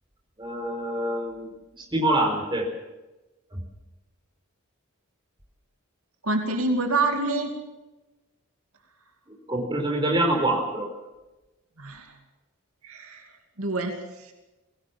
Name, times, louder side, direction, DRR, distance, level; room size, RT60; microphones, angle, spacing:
voice 1, 0.4-2.8 3.5-3.6 9.3-10.9, right 1 dB, 20° right, 1 dB, 4.6 m, -26 dB
voice 2, 6.2-7.5 11.8-12.2 12.8-13.3 13.6-14.3, right 2 dB, 75° right, 4 dB, 2.6 m, -27 dB
22.5 x 18.0 x 7.2 m, 1.1 s
head